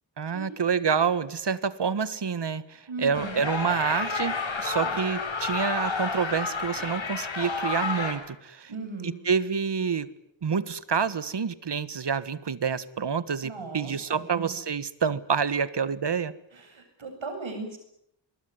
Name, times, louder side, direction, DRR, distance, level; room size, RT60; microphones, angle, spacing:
voice 1, 0.2-8.7 9.2-10.1 10.4-16.3, right 6 dB, 60° right, 16 dB, 1.6 m, -28 dB
voice 2, 2.9-3.4 4.8-5.1 8.7-9.2 13.4-14.5 16.5-17.8, right 3 dB, 80° right, 5 dB, 7.6 m, -37 dB
sound 1, 3.1-8.1, left 4 dB, 75° left, 7.0 m, -30 dB
24.0 x 22.0 x 9.7 m, 0.75 s
wide cardioid pair, 75°, 46 cm